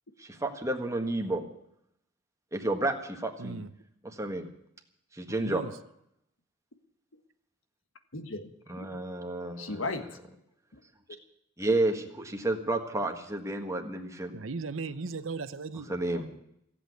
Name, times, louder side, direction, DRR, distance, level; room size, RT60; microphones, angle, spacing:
voice 1, 0.2-1.4 2.5-3.6 4.0-4.5 5.1-5.6 8.7-9.8 11.6-14.3 15.9-16.3, right 2 dB, 15° right, 3 dB, 1.5 m, -31 dB
voice 2, 3.4-3.7 5.3-5.8 14.3-15.9, right 4 dB, 75° right, 12 dB, 0.8 m, -37 dB
voice 3, 8.1-10.2 10.7-10.8 15.9-16.4, left 3 dB, 80° left, 8 dB, 1.5 m, -39 dB
15.5 x 8.5 x 9.4 m, 0.76 s
head